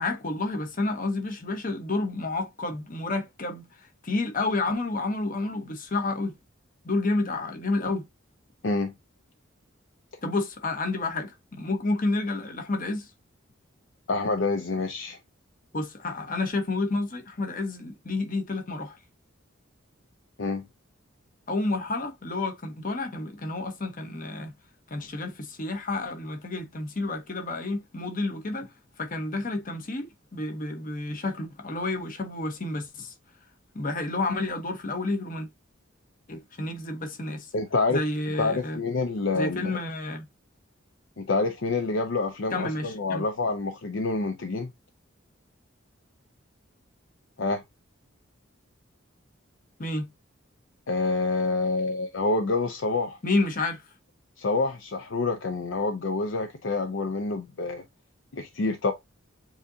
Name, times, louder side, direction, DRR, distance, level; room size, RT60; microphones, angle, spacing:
voice 1, 0.0-3.6 4.0-6.3 6.8-8.0 10.2-13.1 15.7-19.0 21.5-24.5 24.9-28.7 29.0-33.1 33.7-35.5 36.3-37.5 37.9-38.8 39.3-40.2 42.5-43.2 49.8-50.1 53.2-53.8, left 2 dB, 40° left, 1.0 m, -30 dB
voice 2, 14.1-15.2 20.4-20.6 37.5-38.0 38.4-39.8 41.2-44.7 47.4-47.6 50.9-53.2 54.4-57.8 58.3-58.9, left 3 dB, 65° left, 0.6 m, -27 dB
7.3 x 2.8 x 2.6 m
head